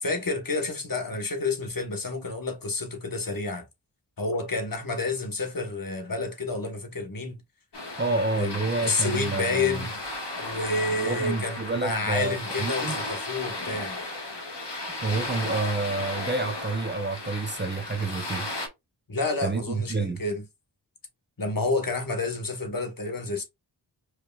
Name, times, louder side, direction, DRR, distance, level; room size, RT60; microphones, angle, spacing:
voice 1, 0.0-3.6 4.2-7.4 8.3-8.6 8.8-10.0 10.4-14.0 19.1-20.4 21.4-23.4, left 3 dB, 45° left, 1.3 m, -29 dB
sound 1, 7.7-18.7, left 2 dB, 65° left, 1.7 m, -34 dB
voice 2, 8.0-9.9 11.0-13.0 15.0-18.5 19.4-20.2, right 3 dB, 25° right, 0.8 m, -29 dB
4.7 x 3.4 x 2.4 m
wide cardioid pair, 60°, 45 cm